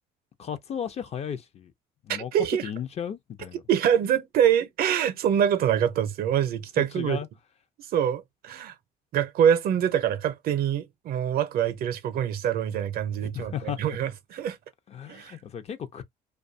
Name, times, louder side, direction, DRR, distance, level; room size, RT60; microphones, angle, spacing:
voice 1, 0.4-1.7 2.0-3.6 6.8-7.3 13.2-13.8 14.9-16.0, left 8 dB, 40° left, 0.5 m, -35 dB
voice 2, 2.1-2.7 3.7-7.2 7.9-8.7 9.1-14.6 15.1-15.4, right 9 dB, 65° right, 0.6 m, -25 dB
2.6 x 2.2 x 2.5 m
cardioid pair, 110°, 17 cm